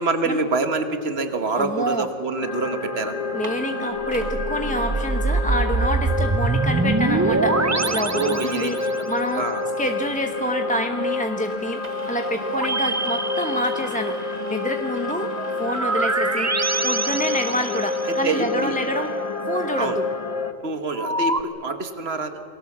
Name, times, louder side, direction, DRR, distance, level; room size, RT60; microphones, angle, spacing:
voice 1, 0.0-3.2 8.1-8.9 9.3-9.6 18.1-18.8 19.8-20.0 20.6-22.4, right 3 dB, 80° right, 8 dB, 1.7 m, -26 dB
sound 1, 1.4-2.5 2.8-2.9 3.2-4.4 5.0-5.1 5.4-18.2, right 3 dB, 40° right, 1.6 m, -46 dB
voice 2, 1.6-2.0 3.3-9.4 9.8-11.8 12.1-15.3 15.6-19.1 19.5-20.1, equal, 10° left, 4 dB, 0.9 m, -27 dB
sound 2, 2.4-20.5, left 3 dB, 35° left, 1.2 m, -29 dB
sound 3, 4.0-9.1 12.4-14.2 15.7-18.3 21.0-21.4, right 3 dB, 20° right, 0.5 m, -24 dB
28.5 x 21.0 x 7.4 m, 2.9 s
omnidirectional pair, 1.0 m